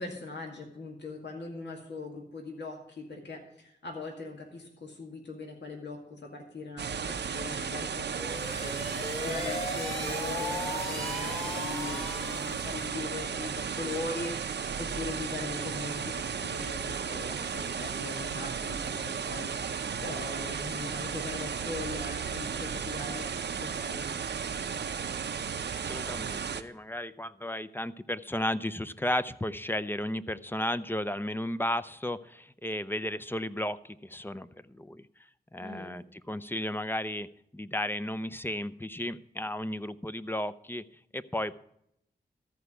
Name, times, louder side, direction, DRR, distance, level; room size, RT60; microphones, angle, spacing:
voice 1, 0.0-24.1 35.6-36.0, left 3 dB, 75° left, 1 dB, 2.1 m, -41 dB
sound 1, 6.8-26.6, right 6 dB, 75° right, 0.7 m, -34 dB
sound 2, 8.1-12.9, left 1 dB, 35° left, 3.1 m, -37 dB
voice 2, 25.8-35.1 35.5-40.8 41.1-41.6, left 1 dB, 10° left, 15 dB, 0.6 m, -34 dB
14.0 x 4.8 x 8.2 m, 0.75 s
cardioid pair, 50°, 18 cm